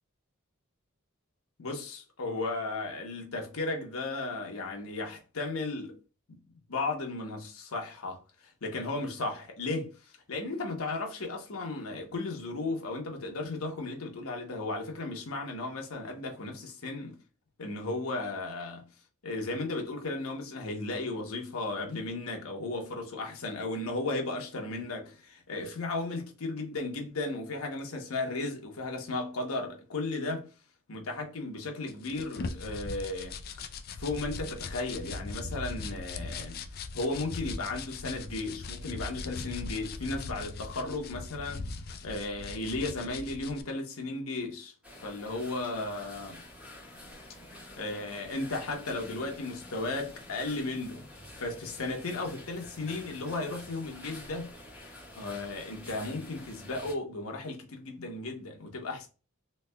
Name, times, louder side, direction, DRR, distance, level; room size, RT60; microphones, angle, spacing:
voice 1, 1.6-6.0 6.3-6.4 6.7-17.2 17.6-18.9 19.2-30.5 30.9-33.4 34.0-44.7 45.0-46.4 47.5-51.0 51.4-54.5 55.1-59.1, left 2 dB, 90° left, 0.9 m, -35 dB
sound 1, 31.9-43.6, left 3 dB, 45° left, 0.3 m, -40 dB
sound 2, 44.8-56.9, left 1 dB, 5° right, 1.3 m, -48 dB
3.2 x 3.2 x 2.2 m
head